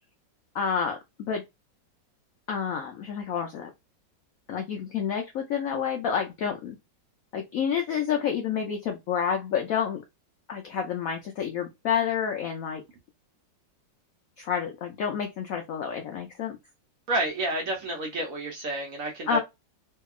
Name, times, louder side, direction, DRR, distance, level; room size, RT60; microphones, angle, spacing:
voice 1, 0.5-1.0 1.3-1.4 2.5-3.7 4.5-6.8 7.3-10.0 10.5-12.8 14.4-16.6 19.3-19.4, left 7 dB, 75° left, 0.7 m, -29 dB
voice 2, 17.1-19.4, right 1 dB, 60° right, 0.9 m, -30 dB
2.8 x 2.7 x 2.3 m
omnidirectional pair, 2.0 m